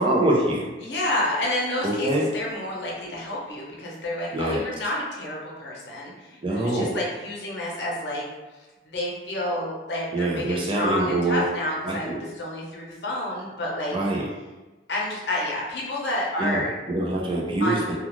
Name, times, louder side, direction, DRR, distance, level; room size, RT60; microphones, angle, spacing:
voice 1, 0.0-0.7 1.8-2.3 4.3-4.6 6.4-7.0 10.1-11.4 11.8-12.2 13.9-14.3 16.4-17.9, right 1 dB, 30° right, -2 dB, 0.5 m, -24 dB
voice 2, 0.8-8.2 8.8-13.9 14.9-16.7 17.6-17.9, left 1 dB, 75° left, -3 dB, 0.7 m, -29 dB
2.4 x 2.3 x 2.9 m, 1.2 s
head